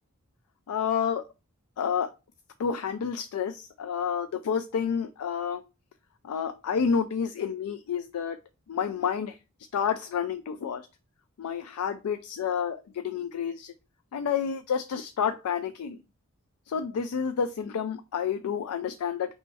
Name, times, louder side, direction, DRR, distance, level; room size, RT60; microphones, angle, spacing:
voice 1, 0.7-1.2 1.8-2.1 2.6-5.6 6.2-8.4 8.7-9.4 9.7-10.9 11.4-13.7 14.1-16.0 16.7-19.4, left 7 dB, 85° left, 9 dB, 0.3 m, -29 dB
4.1 x 3.1 x 3.3 m, 0.29 s
head